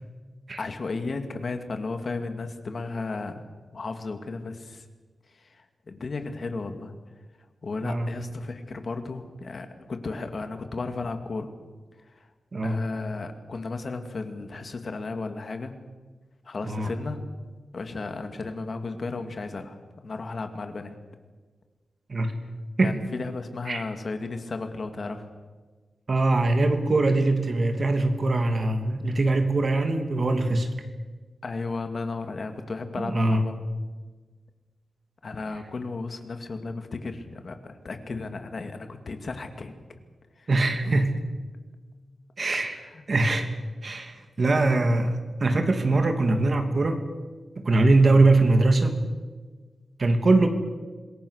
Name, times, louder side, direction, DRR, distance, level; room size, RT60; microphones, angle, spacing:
voice 1, 0.6-3.4 3.7-4.8 5.3-6.9 7.6-11.5 12.6-15.7 16.4-17.2 17.7-19.8 20.0-21.0 22.8-25.2 31.4-33.6 35.2-39.7 40.4-40.5 40.8-41.0 42.8-43.0, left 3 dB, 45° left, 7 dB, 2.4 m, -34 dB
voice 2, 26.1-30.7 33.0-33.4 40.5-41.1 42.4-42.8 43.1-43.5 43.8-47.0 47.6-49.0 50.0-50.5, right 2 dB, 40° right, 6 dB, 2.7 m, -22 dB
26.5 x 21.5 x 6.6 m, 1.3 s
wide cardioid pair, 140°, 0 cm